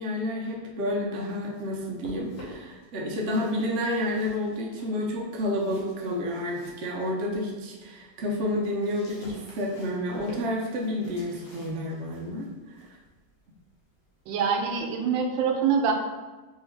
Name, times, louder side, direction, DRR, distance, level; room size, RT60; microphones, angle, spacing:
voice 1, 0.0-12.5, left 1 dB, 60° right, -2 dB, 0.7 m, -30 dB
sound 1, 1.0-2.8 3.2-7.5 7.9-14.5, equal, 90° left, 1.7 m, -49 dB
voice 2, 14.3-15.9, right 6 dB, 90° right, 3 dB, 1.3 m, -25 dB
3.8 x 2.7 x 3.2 m, 1.2 s
omnidirectional pair, 2.0 m